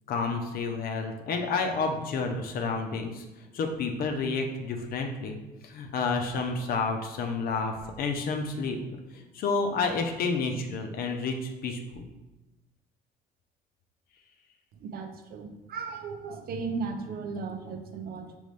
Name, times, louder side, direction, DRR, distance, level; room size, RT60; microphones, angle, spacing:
voice 1, 0.1-3.2 3.5-5.4 5.6-8.8 9.1-12.1, left 4 dB, 60° left, 4 dB, 0.7 m, -30 dB
voice 2, 14.7-18.4, right 4 dB, 65° right, 5 dB, 0.6 m, -36 dB
5.3 x 3.1 x 3.3 m, 1.1 s
cardioid pair, 110°, 17 cm